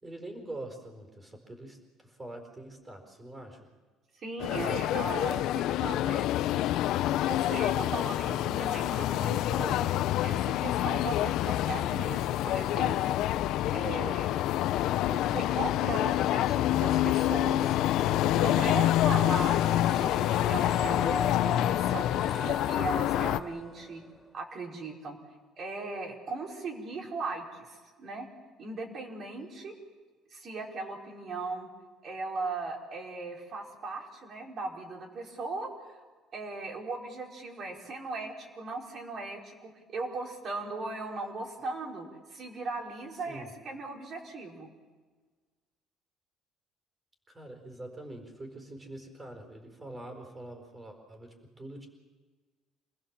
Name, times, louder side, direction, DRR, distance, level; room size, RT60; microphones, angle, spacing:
voice 1, 0.0-3.7 43.3-43.5 47.3-51.9, right 1 dB, 15° right, 5 dB, 4.6 m, -44 dB
voice 2, 4.2-6.3 7.2-9.8 10.2-13.2 13.7-14.3 15.1-17.8 18.3-19.6 19.9-22.1 22.4-24.0 24.3-25.2 25.6-28.3 28.6-29.7 30.3-31.7 32.0-35.7 36.3-44.7, right 3 dB, 40° right, 1 dB, 4.7 m, -38 dB
sound 1, 4.4-23.4, left 13 dB, 70° left, 0.7 m, -27 dB
sound 2, 19.3-24.2, left 2 dB, 5° left, 1.4 m, -40 dB
27.0 x 20.5 x 7.5 m, 1.4 s
cardioid pair, 140°, 0 cm